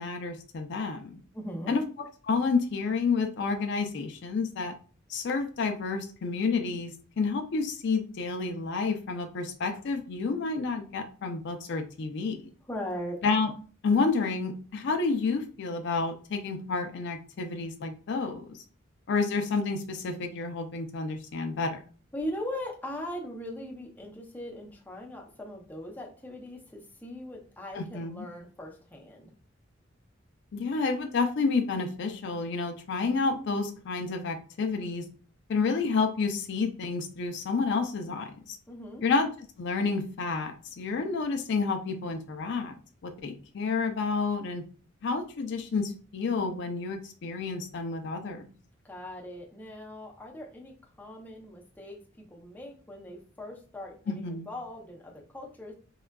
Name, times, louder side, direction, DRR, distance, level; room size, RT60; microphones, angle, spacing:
voice 1, 0.0-1.2 1.7-1.8 2.2-4.7 5.1-12.5 13.2-13.5 13.8-18.6 19.1-21.8 27.7-28.3 30.5-35.1 35.5-38.6 39.0-39.3 39.6-42.8 43.0-44.6 45.0-48.5 54.1-54.5, left 4 dB, 60° left, 5 dB, 0.4 m, -30 dB
voice 2, 1.3-1.7 12.7-13.2 22.1-29.3 38.7-39.0 48.8-52.0 52.3-55.7, left 1 dB, 10° left, -1 dB, 0.5 m, -40 dB
3.6 x 2.3 x 2.2 m, 0.40 s
head